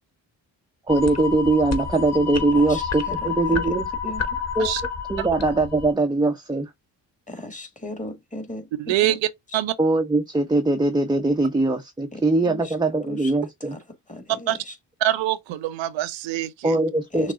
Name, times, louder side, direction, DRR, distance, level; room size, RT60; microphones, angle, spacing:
sound 1, 0.9-5.9, left 6 dB, 35° left, 1.2 m, -29 dB
voice 1, 0.9-3.9 4.6-4.7 5.1-6.7 9.8-13.8 16.6-17.3, right 2 dB, 10° right, 0.7 m, -21 dB
voice 2, 2.5-4.4 7.3-9.2 9.5-9.6 12.1-12.8 13.0-13.3 13.6-14.8 17.1-17.3, left 1 dB, 15° left, 1.9 m, -38 dB
voice 3, 15.0-16.8, right 14 dB, 75° right, 0.7 m, -24 dB
6.1 x 2.0 x 3.7 m
supercardioid pair, 50°, 46 cm